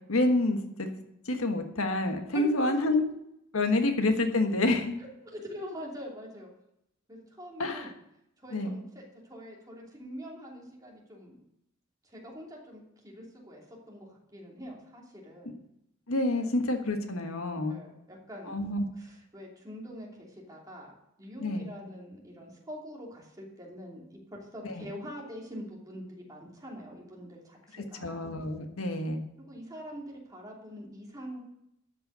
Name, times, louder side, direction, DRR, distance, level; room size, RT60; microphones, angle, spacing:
voice 1, 0.1-0.9 1.2-3.0 3.5-4.9 7.6-7.9 8.5-8.7 16.1-17.8 18.5-18.8 21.4-21.7 24.6-24.8 27.7-29.2, left 2 dB, 90° left, 5 dB, 1.5 m, -28 dB
voice 2, 5.0-6.5 7.1-7.9 8.4-11.4 12.0-15.6 16.3-16.5 17.7-18.6 18.9-20.9 21.2-24.2 24.5-28.1 29.4-31.4, equal, 15° right, -3 dB, 3.0 m, -44 dB
12.5 x 5.7 x 8.1 m, 0.80 s
head